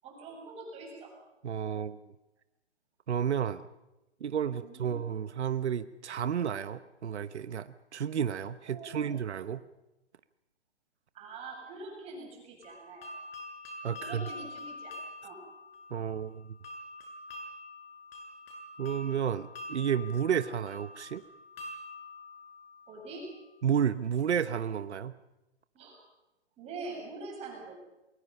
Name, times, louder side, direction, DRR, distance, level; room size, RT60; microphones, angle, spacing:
voice 1, 0.0-1.1 4.5-5.0 8.7-9.1 11.1-13.1 14.0-15.0 15.2-15.4 22.9-23.3 25.7-26.0 26.6-27.7, right 3 dB, 20° right, 0 dB, 7.4 m, -44 dB
voice 2, 1.4-2.0 3.1-3.6 4.2-9.6 13.8-14.3 15.9-16.4 18.8-21.2 23.6-25.1, right 8 dB, 75° right, 12 dB, 1.1 m, -31 dB
sound 1, 12.6-23.4, left 2 dB, 55° left, 7.8 m, -46 dB
28.0 x 22.5 x 5.6 m, 0.96 s
hypercardioid pair, 150°, 34 cm